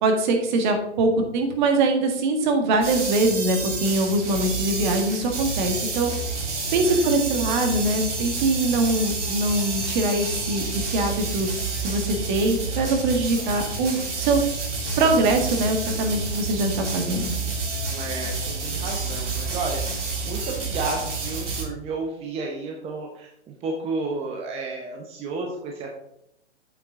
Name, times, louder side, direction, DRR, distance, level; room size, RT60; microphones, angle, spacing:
voice 1, 0.0-6.1 6.7-11.5 11.8-14.4 15.0-17.3, right 2 dB, 40° right, 5 dB, 1.8 m, -23 dB
sound 1, 2.8-21.6, right 3 dB, 85° right, 3.1 m, -29 dB
voice 2, 6.8-7.2 17.7-25.9, right 3 dB, 15° right, 1 dB, 0.9 m, -32 dB
8.3 x 6.5 x 3.8 m, 0.77 s
hypercardioid pair, 135°, 35 cm